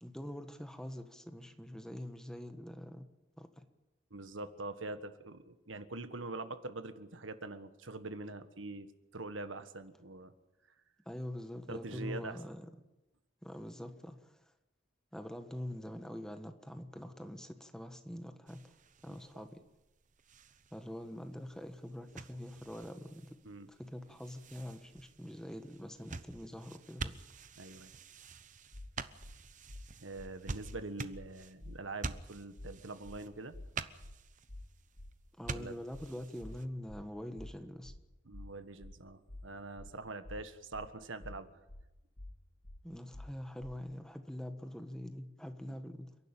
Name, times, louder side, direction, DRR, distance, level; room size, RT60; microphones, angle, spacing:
voice 1, 0.0-3.1 3.4-3.7 11.0-12.7 13.4-14.5 15.1-18.8 19.0-19.6 20.7-23.4 23.7-27.2 35.4-37.9 42.8-46.2, left 1 dB, 5° left, 7 dB, 1.4 m, -44 dB
voice 2, 4.1-10.3 11.7-12.4 19.1-19.2 23.4-23.7 27.6-27.9 30.0-33.5 35.5-35.7 38.3-41.6, right 2 dB, 75° right, 10 dB, 1.6 m, -44 dB
sound 1, 18.5-36.7, right 4 dB, 40° right, 0.9 m, -48 dB
sound 2, 28.7-28.9 29.2-29.4 29.7-29.8 30.2-30.3 30.6-30.8 31.1-31.3 31.6-31.8 32.1-32.2 32.6-32.7 33.0-33.2 33.5-33.7 34.0-34.2 34.5-34.6 35.0-35.1 35.4-35.6 35.9-36.1 36.4-36.6 36.9-37.0 37.4-37.5 37.8-38.0 38.3-38.5 38.8-39.0 39.3-39.4 39.8-39.9 40.2-40.4 40.7-40.9 41.2-41.4 41.7-41.8 42.2-42.3 42.6-42.8 43.1-43.3 43.6-43.8, left 1 dB, 60° left, 1.7 m, -48 dB
29.5 x 11.5 x 9.0 m, 0.97 s
head